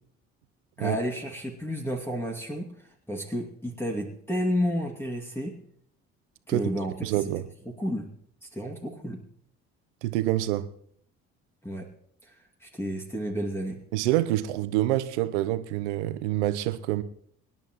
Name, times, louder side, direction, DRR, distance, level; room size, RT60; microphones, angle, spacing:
voice 1, 0.8-5.6 6.5-6.9 7.7-8.1 8.4-9.2 11.6-11.9 12.2-13.8, equal, 5° left, 2.4 m, -31 dB
voice 2, 7.0-7.5 10.0-10.7 13.9-17.0, right 14 dB, 85° right, 0.9 m, -26 dB
25.5 x 11.0 x 3.1 m
hypercardioid pair, 50°, 34 cm